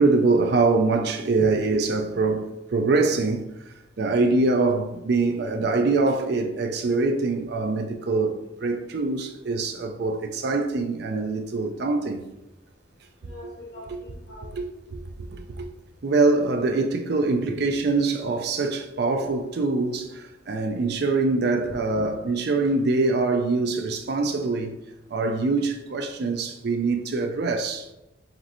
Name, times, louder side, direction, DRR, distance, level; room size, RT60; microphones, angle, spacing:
voice 1, 0.0-3.5 4.0-12.3 14.5-14.6 14.9-15.0 15.3-15.7 16.0-24.8 25.1-27.9, right 3 dB, 55° right, 0.4 m, -24 dB
voice 2, 1.4-1.8 13.2-14.5 17.4-17.8 21.3-21.5 22.0-22.1, equal, 60° left, 1.1 m, -39 dB
5.0 x 3.1 x 3.0 m
head